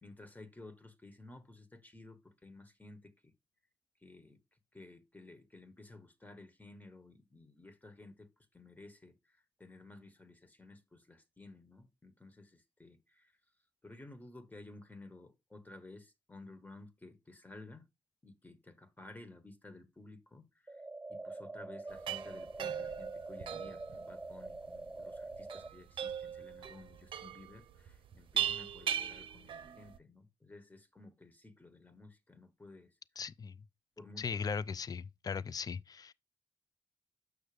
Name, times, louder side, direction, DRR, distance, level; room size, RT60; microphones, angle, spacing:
voice 1, 0.0-3.3 4.0-4.4 4.7-13.3 13.8-17.9 18.2-20.8 21.1-32.9 34.0-34.4, left 2 dB, 20° left, 1.6 m, -54 dB
sound 1, 20.7-25.7, right 2 dB, 15° right, 0.5 m, -45 dB
sound 2, 21.9-30.0, right 9 dB, 75° right, 0.6 m, -40 dB
voice 2, 33.2-33.6 34.2-36.1, left 5 dB, 45° left, 0.4 m, -38 dB
6.6 x 6.3 x 3.4 m
supercardioid pair, 50°, 9 cm